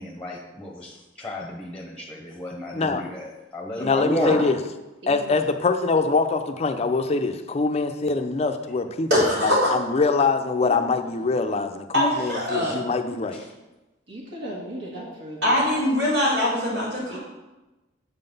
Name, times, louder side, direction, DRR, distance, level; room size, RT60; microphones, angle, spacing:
voice 1, 0.0-3.3 3.5-4.5 13.3-13.5, left 1 dB, 5° left, 0 dB, 0.9 m, -31 dB
voice 2, 2.7-3.0 3.8-4.6 5.1-13.4, left 4 dB, 35° left, 7 dB, 0.4 m, -24 dB
voice 3, 3.7-4.4 5.0-5.3 10.6-11.1 14.1-15.6 17.1-17.2, right 1 dB, 65° right, -5 dB, 1.5 m, -36 dB
voice 4, 9.1-9.7 11.9-12.7 15.4-17.2, left 1 dB, 80° right, -9 dB, 2.2 m, -22 dB
7.4 x 3.9 x 5.3 m, 1.1 s
head